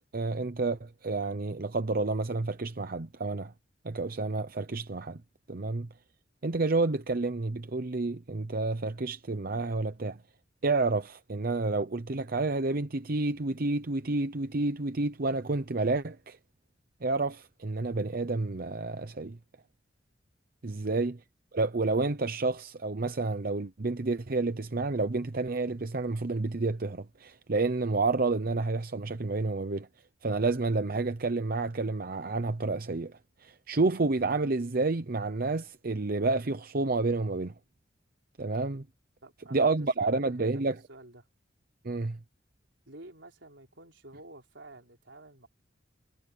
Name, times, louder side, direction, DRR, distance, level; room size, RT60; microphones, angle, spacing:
voice 1, 0.1-3.5 3.8-5.2 5.5-5.9 6.4-10.2 10.6-16.4 17.0-19.4 20.6-21.2 21.5-29.9 30.2-37.5 38.4-38.8 39.5-40.8 41.8-42.2, right 3 dB, 50° right, 0.8 m, -29 dB
voice 2, 39.2-40.6 40.9-41.3 42.9-45.5, right 2 dB, 80° right, 4.3 m, -50 dB
head